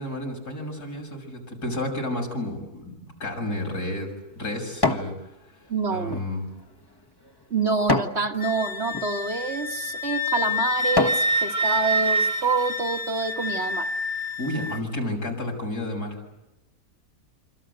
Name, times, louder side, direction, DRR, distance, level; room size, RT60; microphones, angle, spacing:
voice 1, 0.0-2.9 3.2-5.1 5.9-6.5 14.4-16.2, left 1 dB, 85° left, 2 dB, 7.2 m, -31 dB
sound 1, 3.3-5.2 5.6-8.2 8.8-9.1 9.8-9.9 10.4-11.3 11.8-11.9, left 2 dB, 15° left, 1.4 m, -28 dB
voice 2, 5.7-6.2 7.5-13.9, right 4 dB, 45° right, 4 dB, 1.9 m, -27 dB
Wind instrument woodwind instrument, 8.4-14.8, equal, 85° right, 2.5 m, -27 dB
26.5 x 26.5 x 8.0 m, 0.98 s
omnidirectional pair, 1.6 m